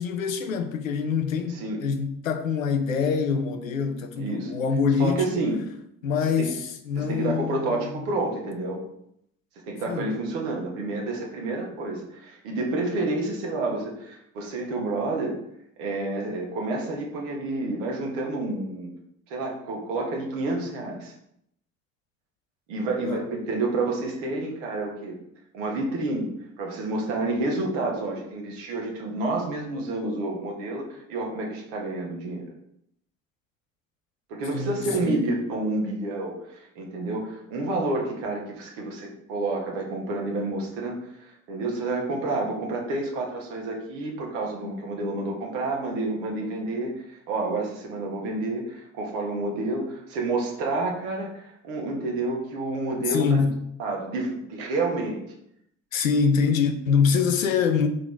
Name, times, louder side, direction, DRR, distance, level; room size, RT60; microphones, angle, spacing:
voice 1, 0.0-5.4 6.0-7.9 9.9-10.1 23.0-23.3 34.5-35.3 53.1-53.6 55.9-57.9, left 5 dB, 80° left, 0.9 m, -25 dB
voice 2, 4.2-4.5 5.0-5.6 6.4-6.5 7.0-8.8 9.7-15.4 15.8-18.9 19.3-21.1 22.7-25.1 25.5-32.5 34.3-53.4 53.8-55.2, right 2 dB, 65° right, 2.0 m, -29 dB
7.4 x 4.0 x 4.6 m
figure-of-eight pair, 55°, 39 cm